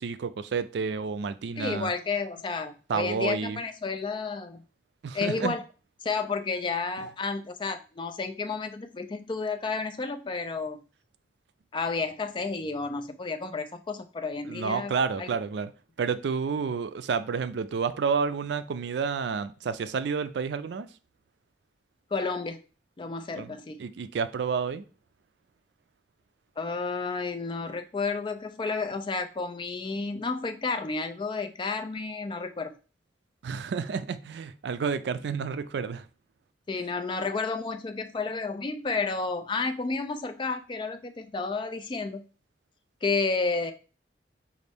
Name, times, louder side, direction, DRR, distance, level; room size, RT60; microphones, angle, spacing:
voice 1, 0.0-1.9 2.9-3.6 5.0-5.5 14.5-15.7 16.0-20.9 23.4-24.8 33.4-36.0, right 5 dB, 75° right, 0.4 m, -30 dB
voice 2, 1.6-4.6 5.1-5.6 6.0-10.8 11.7-14.9 15.2-15.4 22.1-22.6 23.0-23.8 26.6-32.7 36.7-42.2 43.0-43.7, left 4 dB, 25° left, 0.4 m, -31 dB
5.2 x 2.5 x 3.4 m
head